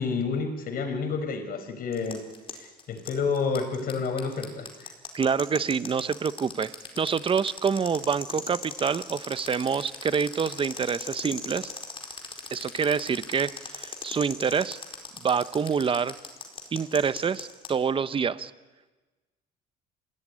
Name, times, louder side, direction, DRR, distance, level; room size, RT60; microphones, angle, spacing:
voice 1, 0.0-2.2 2.5-4.9, left 5 dB, 60° left, 7 dB, 5.1 m, -29 dB
sound 1, 1.9-17.7, left 4 dB, 30° left, 4.6 m, -38 dB
voice 2, 5.1-11.7 12.5-14.8 15.2-16.1 16.7-18.5, right 6 dB, 30° right, 14 dB, 1.0 m, -27 dB
26.0 x 17.5 x 9.9 m, 1.3 s
cardioid pair, 110°, 17 cm